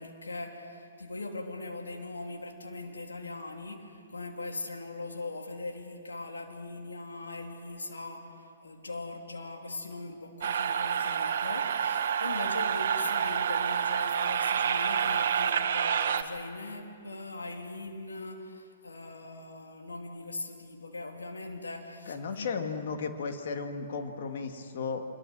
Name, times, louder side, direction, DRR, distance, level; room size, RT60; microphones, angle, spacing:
voice 1, 0.0-22.5, left 2 dB, 80° left, 2 dB, 3.2 m, -40 dB
sound 1, 10.4-16.2, right 7 dB, 55° right, 1.3 m, -28 dB
voice 2, 22.1-25.0, left 5 dB, 55° left, 5 dB, 2.2 m, -34 dB
25.0 x 22.5 x 6.3 m, 2.4 s
figure-of-eight pair, 120°, 0 cm